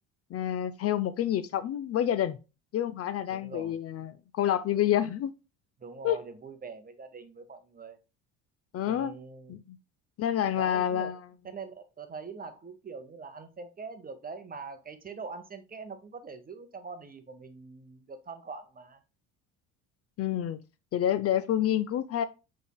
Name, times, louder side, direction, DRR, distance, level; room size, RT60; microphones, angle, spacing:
voice 1, 0.3-2.4 2.7-5.3 6.0-6.2 8.7-9.1 9.5-9.8 10.2-11.2 20.2-20.6 20.9-22.2, left 11 dB, 40° left, 0.4 m, -28 dB
voice 2, 3.3-3.8 5.8-8.0 8.8-9.6 10.5-11.1 11.5-19.0, right 4 dB, 25° right, 0.7 m, -43 dB
5.0 x 3.5 x 2.2 m
hypercardioid pair, 65°, 39 cm